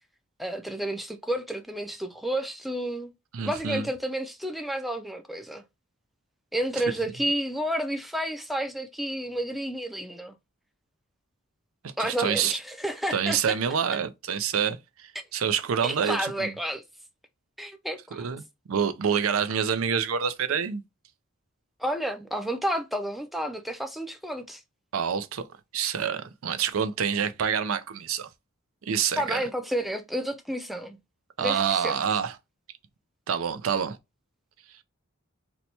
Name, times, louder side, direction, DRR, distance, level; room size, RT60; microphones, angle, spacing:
voice 1, 0.4-3.1 3.4-5.6 6.5-10.4 12.0-13.6 15.8-16.8 17.6-18.3 21.8-24.6 29.2-31.0 31.4-32.0, right 1 dB, ahead, 0.4 m, -31 dB
voice 2, 3.3-3.9 11.8-12.5 13.1-16.5 18.1-18.4 18.7-20.8 24.9-25.4 25.7-28.3 28.8-29.4 31.4-32.3 33.3-34.0, right 7 dB, 85° right, 0.5 m, -27 dB
2.8 x 2.2 x 4.1 m
head